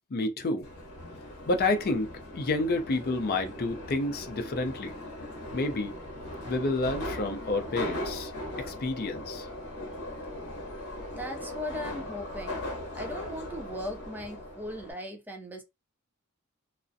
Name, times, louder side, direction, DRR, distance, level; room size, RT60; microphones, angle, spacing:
voice 1, 0.1-0.7 1.5-4.9 5.5-5.9 6.4-8.3 8.6-9.5, left 2 dB, 45° left, 0.5 m, -29 dB
Subway metro underground, 0.6-14.9, left 1 dB, 80° left, 0.7 m, -39 dB
voice 2, 11.2-12.6 12.9-15.6, left 1 dB, 10° right, 0.4 m, -38 dB
2.4 x 2.0 x 2.6 m
head